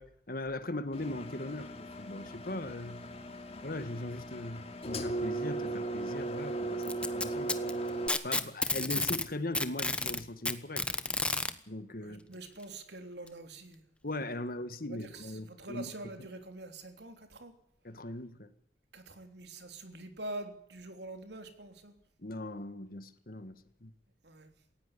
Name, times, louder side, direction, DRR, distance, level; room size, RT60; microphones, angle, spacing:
voice 1, 0.0-3.1 3.6-7.7 8.2-10.9 11.7-12.2 14.0-15.9 17.8-18.5 22.2-23.5 23.8-23.9, left 1 dB, 55° left, 1.6 m, -39 dB
Engine, 0.9-8.1, right 2 dB, 35° left, 2.7 m, -37 dB
Packing tape duct tape, 6.8-9.3 9.5-11.5 12.6-12.7 13.3-13.4 14.2-14.3, left 2 dB, 5° left, 1.2 m, -31 dB
voice 2, 12.0-13.8 14.9-17.5 18.9-21.9 24.2-24.5, right 2 dB, 70° right, 3.4 m, -45 dB
18.5 x 16.0 x 9.8 m
head